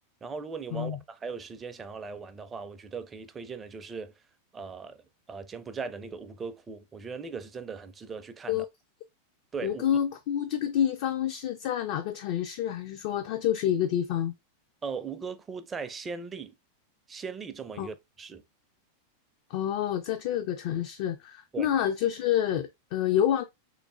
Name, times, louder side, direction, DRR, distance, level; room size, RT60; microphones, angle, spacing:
voice 1, 0.2-4.1 4.5-5.0 5.3-8.7 9.5-9.8 14.8-16.5 17.1-18.4 21.5-21.7, right 5 dB, 20° right, 0.4 m, -38 dB
voice 2, 9.6-14.3 17.8-17.9 19.5-23.4, left 10 dB, 50° left, 0.3 m, -28 dB
3.5 x 3.1 x 2.3 m
figure-of-eight pair, 90°, 0 cm